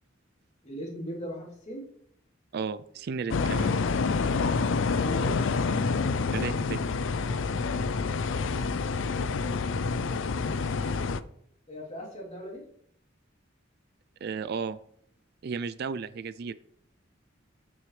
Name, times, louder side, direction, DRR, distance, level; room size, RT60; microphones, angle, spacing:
voice 1, 0.6-1.9 5.0-5.4 8.9-9.6 11.7-12.6, equal, 35° left, -3 dB, 3.0 m, -39 dB
voice 2, 2.5-3.8 6.3-6.8 14.2-14.8 15.4-16.5, right 5 dB, 55° right, 15 dB, 0.4 m, -34 dB
sound 1, 3.3-11.2, left 4 dB, 75° left, 0.5 m, -27 dB
14.0 x 6.2 x 3.3 m, 0.68 s
head